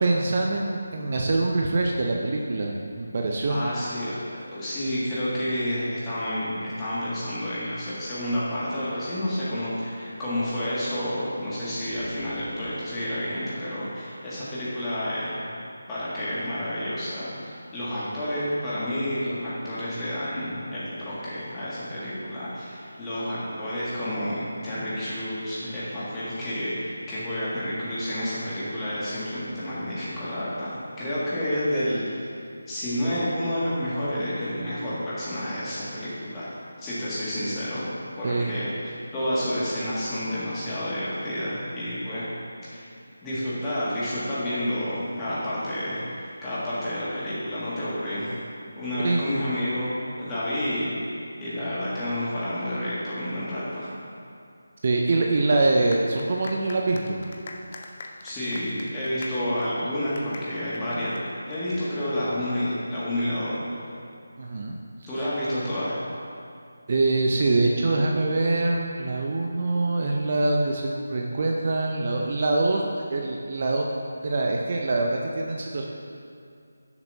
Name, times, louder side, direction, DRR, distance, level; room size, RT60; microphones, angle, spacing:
voice 1, 0.0-3.6 38.2-38.5 49.0-49.2 54.8-57.2 64.4-65.1 66.9-72.8 73.1-73.8 74.2-75.8, right 2 dB, 40° right, 0 dB, 0.6 m, -24 dB
voice 2, 3.5-4.1 4.5-15.6 15.9-36.5 36.8-37.9 38.2-42.3 42.6-42.9 43.2-48.3 48.8-51.0 51.4-53.9 58.2-63.6 65.1-66.0, equal, 15° left, -11 dB, 2.0 m, -30 dB
sound 1, 11.8-14.3, equal, 80° left, 2.0 m, -46 dB
sound 2, 55.9-61.9, left 2 dB, 35° left, 0.6 m, -43 dB
11.0 x 6.9 x 2.7 m, 2.4 s
figure-of-eight pair, 160°, 0 cm